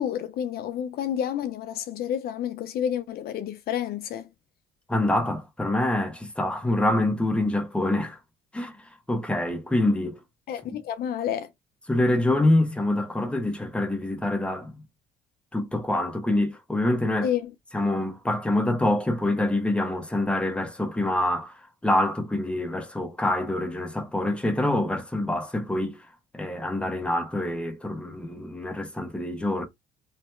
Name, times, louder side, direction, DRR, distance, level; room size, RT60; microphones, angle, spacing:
voice 1, 0.0-4.3 10.5-11.5 17.2-17.5, left 9 dB, 65° left, 0.7 m, -29 dB
voice 2, 4.9-8.2 8.5-8.8 9.1-10.2 11.9-14.8 15.5-17.3 17.7-21.6 21.8-26.0 26.3-29.7, left 1 dB, 5° left, 1.2 m, -25 dB
3.3 x 3.1 x 4.4 m
cardioid pair, 110°, 17 cm